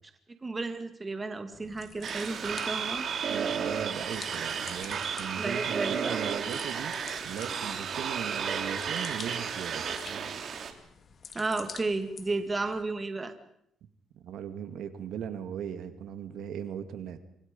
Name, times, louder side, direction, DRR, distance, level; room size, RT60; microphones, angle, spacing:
voice 1, 0.4-3.1 5.4-6.5 11.3-13.3, right 3 dB, 20° right, 8 dB, 2.2 m, -33 dB
sound 1, 1.5-12.8, left 6 dB, 40° left, 2.2 m, -50 dB
sound 2, 2.0-10.7, right 6 dB, 50° right, 3.0 m, -33 dB
voice 2, 3.3-6.9 7.2-9.9 14.2-17.2, right 9 dB, 75° right, 9 dB, 2.2 m, -38 dB
27.0 x 26.0 x 5.5 m, 0.73 s
cardioid pair, 135°, 0 cm